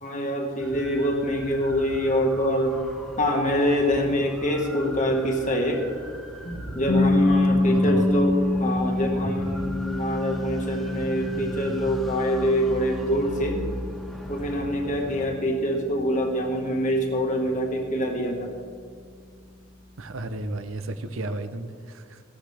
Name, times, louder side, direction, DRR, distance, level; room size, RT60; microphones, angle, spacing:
voice 1, 0.0-2.8 3.2-5.8 6.4-13.6 14.3-18.5, equal, 35° left, 2 dB, 1.6 m, -25 dB
sound 1, 0.6-15.3, equal, ahead, 1.5 m, -39 dB
sound 2, 6.9-18.7, left 2 dB, 55° left, 1.5 m, -27 dB
voice 2, 7.4-8.3 20.0-22.2, right 2 dB, 65° right, 10 dB, 0.7 m, -34 dB
15.5 x 12.0 x 3.4 m, 2.1 s
head